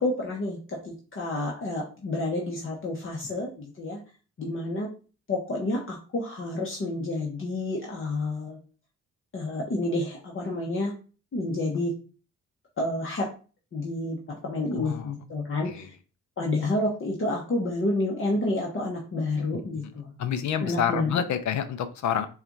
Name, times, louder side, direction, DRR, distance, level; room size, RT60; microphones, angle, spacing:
voice 1, 0.0-4.0 4.4-4.9 5.3-8.6 9.3-10.9 11.3-11.9 12.8-13.3 13.7-15.9 16.4-20.1 20.6-21.2, left 2 dB, 45° left, -2 dB, 1.0 m, -29 dB
voice 2, 14.7-15.1 15.7-15.9 19.5-19.6 20.2-22.3, left 8 dB, 70° left, 11 dB, 0.6 m, -28 dB
4.2 x 2.4 x 3.9 m, 0.37 s
cardioid pair, 70°, 30 cm